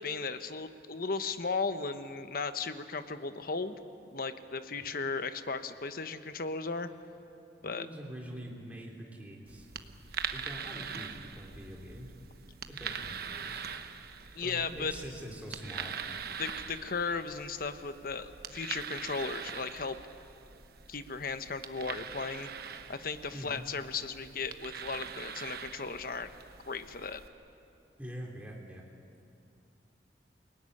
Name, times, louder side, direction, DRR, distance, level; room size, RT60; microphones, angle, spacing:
voice 1, 0.0-3.7 4.1-6.9 7.6-7.9 14.3-14.9 16.4-20.0 20.9-22.5 22.9-26.3 26.7-27.2, left 4 dB, 55° left, 9 dB, 1.1 m, -36 dB
voice 2, 7.6-9.7 10.3-12.1 12.7-13.6 14.4-15.9 23.3-23.6 28.0-28.8, equal, 10° right, -1 dB, 3.1 m, -44 dB
sound 1, 9.5-27.3, right 6 dB, 60° right, 1.2 m, -43 dB
29.0 x 18.5 x 9.9 m, 2.6 s
head